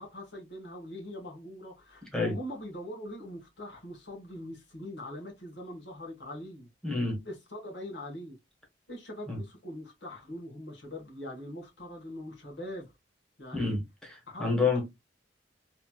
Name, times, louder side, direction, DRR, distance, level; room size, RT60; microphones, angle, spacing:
voice 1, 0.0-6.7 7.2-8.4 8.9-12.9 13.4-13.8 14.3-14.8, equal, 70° left, 1.2 m, -42 dB
voice 2, 6.8-7.2 9.3-9.4 13.5-14.8, left 3 dB, 5° left, 1.2 m, -29 dB
3.1 x 2.8 x 2.2 m
head